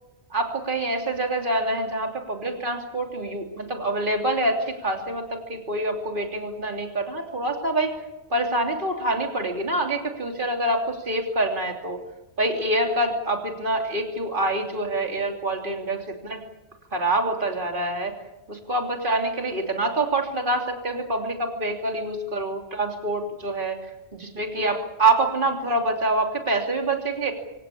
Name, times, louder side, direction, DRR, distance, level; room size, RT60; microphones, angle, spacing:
voice 1, 0.3-7.9 8.3-12.0 12.4-16.4 16.9-18.1 18.5-23.8 24.1-27.3, right 2 dB, 45° right, 3 dB, 3.2 m, -26 dB
25.5 x 17.5 x 8.6 m, 0.98 s
omnidirectional pair, 1.2 m